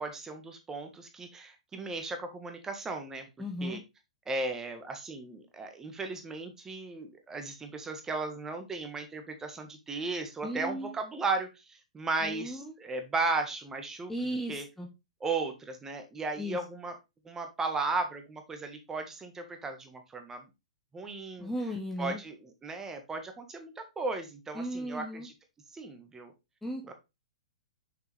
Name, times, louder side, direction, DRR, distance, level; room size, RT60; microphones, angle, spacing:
voice 1, 0.0-3.3 3.6-3.8 4.3-14.1 14.5-14.6 15.2-16.9 17.2-20.4 20.9-21.5 22.0-25.3 25.7-26.3 26.9-27.0, right 3 dB, 15° right, 6 dB, 1.6 m, -35 dB
voice 2, 3.4-3.8 10.4-10.9 12.2-12.7 14.1-14.9 16.4-16.6 21.4-22.2 24.5-25.3 26.6-26.9, equal, 5° left, 1 dB, 1.1 m, -36 dB
6.4 x 5.6 x 3.5 m, 0.24 s
figure-of-eight pair, 110°, 4 cm